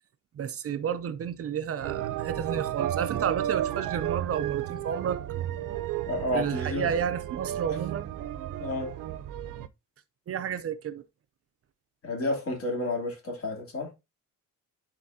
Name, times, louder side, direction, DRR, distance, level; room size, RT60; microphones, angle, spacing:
voice 1, 0.3-5.2 6.3-8.1 10.3-11.0, right 8 dB, 45° right, 0.6 m, -31 dB
sound 1, 1.8-9.7, right 11 dB, 80° right, 0.7 m, -33 dB
voice 2, 6.1-6.9 8.6-8.9 12.0-13.9, left 1 dB, 45° left, 2.9 m, -30 dB
11.0 x 4.3 x 2.7 m
cardioid pair, 165°, 31 cm